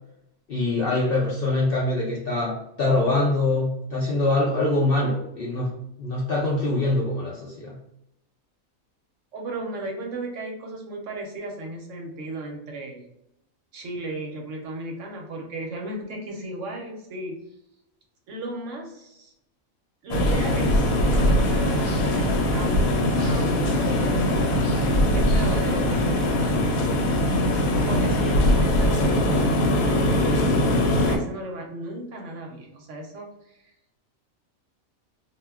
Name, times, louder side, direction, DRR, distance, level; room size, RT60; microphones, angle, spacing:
voice 1, 0.5-5.7 6.0-7.8, left 2 dB, 65° left, -4 dB, 0.5 m, -24 dB
voice 2, 9.3-13.1 13.7-17.4 18.3-19.3 20.0-26.3 27.5-30.6 31.1-33.7, right 2 dB, 70° right, 1 dB, 0.9 m, -36 dB
sound 1, 20.1-31.2, left 1 dB, 90° left, 1.1 m, -21 dB
2.4 x 2.1 x 3.4 m, 0.83 s
omnidirectional pair, 1.5 m